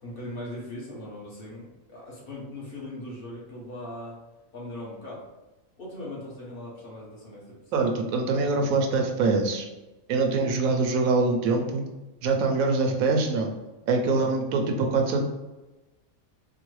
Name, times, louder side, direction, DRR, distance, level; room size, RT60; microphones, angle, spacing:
voice 1, 0.0-4.2 4.5-5.2 5.8-7.9 14.1-14.3, left 1 dB, 45° left, -5 dB, 1.1 m, -39 dB
voice 2, 7.7-9.7 10.1-11.8 12.2-13.5 13.9-15.2, right 3 dB, 85° right, 3 dB, 1.0 m, -24 dB
3.8 x 2.1 x 3.1 m, 1.1 s
omnidirectional pair, 1.4 m